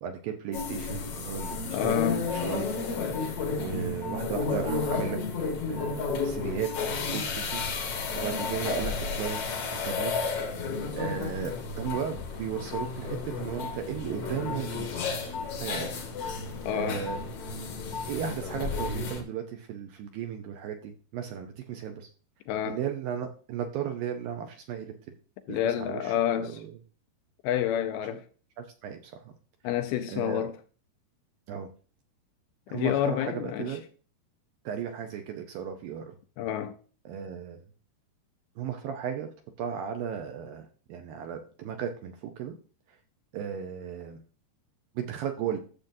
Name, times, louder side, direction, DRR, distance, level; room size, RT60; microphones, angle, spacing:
voice 1, 0.0-2.7 3.5-5.2 5.7-7.6 8.1-9.4 9.8-10.1 10.9-15.1 15.6-15.9 16.7-17.2 18.1-22.1 22.6-24.9 25.5-26.7 28.0-28.2 28.6-29.3 30.1-30.4 31.5-31.7 32.7-33.8 34.6-36.2 37.1-37.6 38.6-39.3 39.6-42.6 42.9-43.0 43.3-44.2 45.0-45.6, right 8 dB, 75° right, 2.2 m, -35 dB
sound 1, 0.5-19.2, left 4 dB, 60° left, 1.6 m, -32 dB
voice 2, 1.7-2.3 16.7-17.0 22.5-22.8 25.5-26.6 27.4-28.3 29.6-30.6 32.7-33.8 36.4-36.8, left 10 dB, 80° left, 2.4 m, -28 dB
12.0 x 7.4 x 2.6 m
omnidirectional pair, 4.8 m